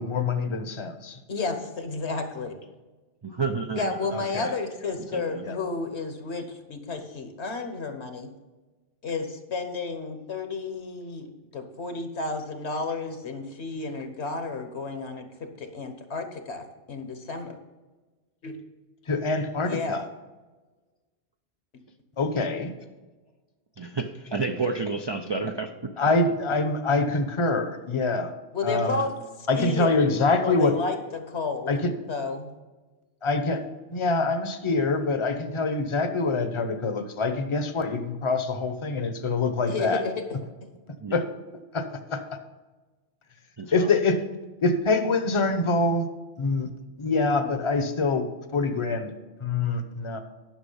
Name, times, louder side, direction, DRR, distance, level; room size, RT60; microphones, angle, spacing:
voice 1, 0.0-1.2 4.1-4.5 5.4-5.6 19.1-20.0 22.2-22.7 26.0-28.3 28.6-29.0 29.5-30.8 31.7-31.9 33.2-33.6 33.9-40.0 41.1-41.3 41.7-41.8 42.1-42.2 43.7-44.2 44.6-46.1 46.4-46.7 47.0-49.1 49.4-50.2, left 3 dB, 30° left, 8 dB, 0.8 m, -25 dB
voice 2, 1.3-2.6 3.7-8.3 9.0-11.3 11.5-15.3 15.6-17.6 18.4-18.5 19.6-20.0 28.5-29.1 29.5-30.1 30.4-31.7 32.1-32.5 39.7-40.1 40.6-40.7, left 4 dB, 70° left, 7 dB, 1.4 m, -32 dB
voice 3, 3.2-4.0 5.1-5.5 23.8-25.9 41.0-41.2 43.6-43.9, right 4 dB, 40° right, 5 dB, 0.3 m, -30 dB
10.0 x 6.1 x 5.6 m, 1.2 s
omnidirectional pair, 1.2 m